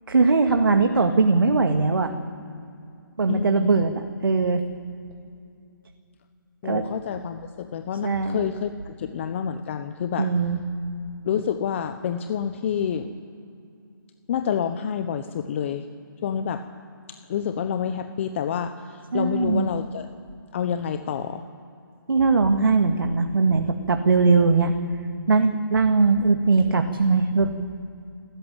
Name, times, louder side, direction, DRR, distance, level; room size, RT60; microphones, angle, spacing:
voice 1, 0.1-2.1 3.2-4.6 6.6-6.8 8.0-8.4 10.2-10.6 19.1-19.7 22.1-24.7 25.3-27.5, right 4 dB, 75° right, 5 dB, 2.1 m, -20 dB
voice 2, 3.3-3.8 6.6-10.3 11.2-13.1 14.3-15.9 16.2-16.6 17.3-20.1 20.5-21.4, left 8 dB, 35° left, 9 dB, 1.1 m, -28 dB
28.0 x 14.0 x 9.1 m, 2.5 s
hypercardioid pair, 155°, 12 cm